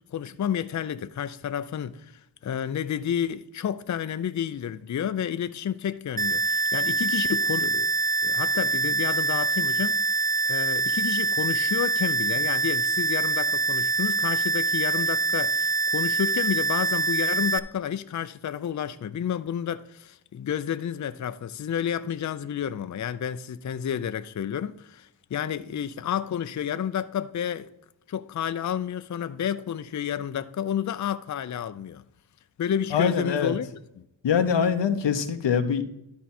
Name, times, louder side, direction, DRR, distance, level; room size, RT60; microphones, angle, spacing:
voice 1, 0.1-7.9 8.2-10.0 10.5-27.7 28.1-32.0 32.6-33.7 34.0-34.1, left 9 dB, 45° left, 0.5 m, -30 dB
sound 1, 6.2-17.6, right 4 dB, 20° right, 0.4 m, -25 dB
voice 2, 32.9-33.5 34.2-35.8, left 7 dB, 90° left, 0.9 m, -23 dB
12.5 x 4.6 x 4.3 m
cardioid pair, 55°, 42 cm